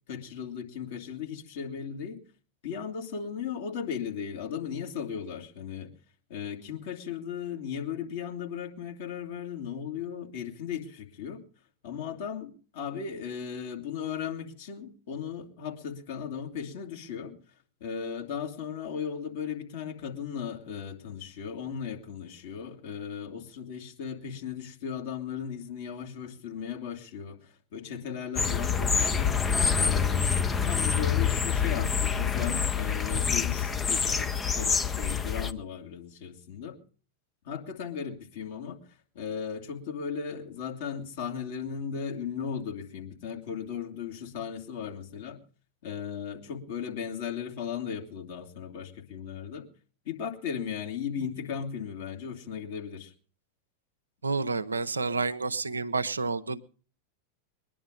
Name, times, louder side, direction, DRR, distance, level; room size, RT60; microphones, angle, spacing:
voice 1, 0.1-2.2 2.6-5.9 6.3-11.4 11.8-17.3 17.8-29.4 29.7-36.8 37.4-38.8 39.1-45.4 45.8-49.7 50.0-53.1, left 7 dB, 55° left, 3 dB, 2.6 m, -36 dB
sound 1, 28.4-35.5, left 6 dB, 15° left, 0.8 m, -26 dB
voice 2, 54.2-56.6, right 3 dB, 75° right, 10 dB, 0.7 m, -29 dB
21.5 x 10.5 x 5.1 m, 0.40 s
figure-of-eight pair, 90°, 0 cm